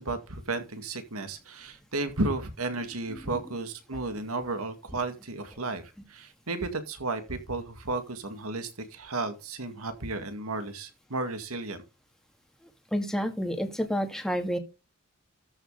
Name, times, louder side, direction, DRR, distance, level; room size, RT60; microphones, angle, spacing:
voice 1, 0.0-11.8, right 2 dB, 85° right, 8 dB, 2.1 m, -33 dB
voice 2, 12.9-14.6, equal, ahead, 5 dB, 2.0 m, -29 dB
13.5 x 6.5 x 4.0 m, 0.29 s
head